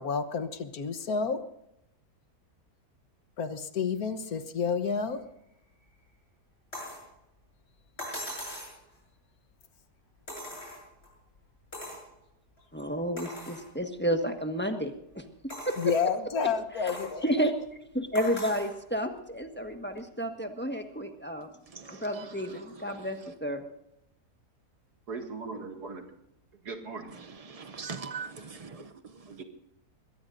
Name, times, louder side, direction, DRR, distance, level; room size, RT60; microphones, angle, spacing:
voice 1, 0.0-1.5 3.4-5.3 15.8-17.5, left 5 dB, 70° left, 1.5 m, -30 dB
sound 1, 6.7-7.1 8.0-8.8 10.3-11.1 11.7-12.1 12.6-12.7 13.2-13.7 14.3-14.4 15.5-16.1 16.9-17.1 18.1-18.7 20.0-20.1, left 1 dB, 40° left, 7.5 m, -40 dB
voice 2, 12.7-15.2 15.7-15.8 17.2-17.5 17.9-21.5 21.9-23.6, equal, 5° left, 1.3 m, -31 dB
voice 3, 21.7-22.3 22.6-22.8 27.2-29.4, right 5 dB, 50° right, 0.4 m, -42 dB
voice 4, 25.1-26.0 26.6-27.2 29.3-29.4, right 4 dB, 85° right, 2.7 m, -39 dB
22.5 x 18.0 x 2.6 m
omnidirectional pair, 1.7 m